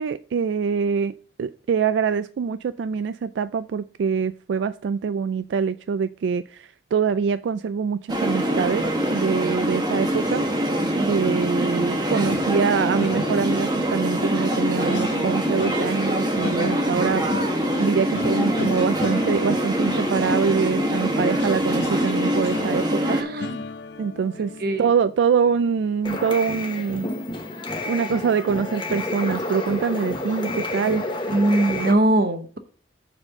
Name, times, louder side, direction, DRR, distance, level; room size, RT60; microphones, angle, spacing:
voice 1, 0.0-8.9 9.1-10.4 11.1-23.2 24.0-27.1 27.9-31.1, right 6 dB, 85° right, 0.3 m, -24 dB
sound 1, 8.1-23.2, equal, 25° right, 1.0 m, -24 dB
sound 2, 12.1-27.3 27.7-27.9 28.2-28.4, left 3 dB, 75° left, 0.5 m, -36 dB
voice 2, 23.0-23.6 24.6-24.9 31.3-32.6, right 1 dB, 55° right, 0.9 m, -22 dB
sound 3, 26.0-31.9, left 2 dB, 25° left, 1.0 m, -29 dB
7.1 x 4.1 x 6.6 m
head